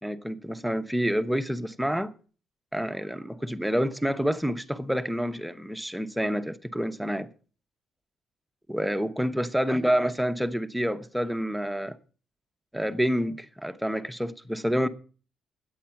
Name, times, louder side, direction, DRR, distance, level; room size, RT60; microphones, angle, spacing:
voice 1, 0.0-2.1 2.7-7.3 8.7-12.0 12.7-14.9, equal, 5° right, 0.8 m, -28 dB
9.9 x 8.5 x 5.8 m
cardioid pair, 90°, 0 cm